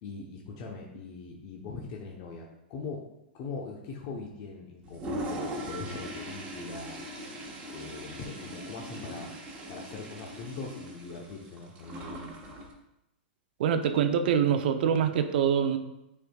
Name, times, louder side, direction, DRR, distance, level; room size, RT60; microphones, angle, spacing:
voice 1, 0.0-3.0 3.3-7.1 7.7-9.3 9.7-12.3, left 4 dB, 45° left, -1 dB, 0.9 m, -41 dB
Toilet flush, 4.8-12.7, equal, 25° right, 1.3 m, -40 dB
voice 2, 13.6-15.8, right 8 dB, 65° right, 8 dB, 0.7 m, -25 dB
9.8 x 4.4 x 2.3 m, 0.88 s
hypercardioid pair, 145°, 6 cm